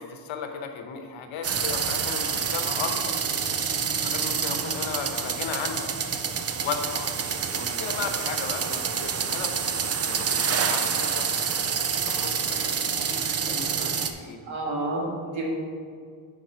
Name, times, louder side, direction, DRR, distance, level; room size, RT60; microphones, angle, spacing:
voice 1, 0.0-3.2 4.0-5.9 6.6-7.2 7.5-9.5 10.0-11.3 12.0-14.5, left 6 dB, 90° left, 5 dB, 1.0 m, -35 dB
sound 1, 1.4-14.1, right 6 dB, 35° right, 0.5 m, -27 dB
voice 2, 14.5-15.5, right 2 dB, 90° right, -2 dB, 1.9 m, -29 dB
8.7 x 5.4 x 4.5 m, 2.1 s
cardioid pair, 130°, 45 cm